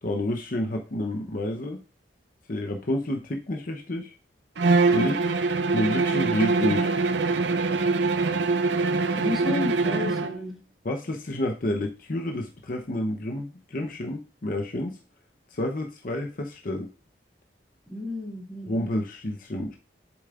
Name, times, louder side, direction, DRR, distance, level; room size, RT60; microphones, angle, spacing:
voice 1, 0.0-1.8 2.5-4.1 4.9-5.2 5.7-6.9 10.8-15.0 15.5-16.9 18.7-19.8, left 1 dB, 50° left, 2 dB, 0.8 m, -29 dB
Bowed string instrument, 4.6-10.4, right 3 dB, 80° right, 0.7 m, -23 dB
voice 2, 9.2-10.6 17.9-18.7, left 2 dB, ahead, -3 dB, 2.5 m, -32 dB
8.1 x 7.0 x 2.5 m, 0.35 s
head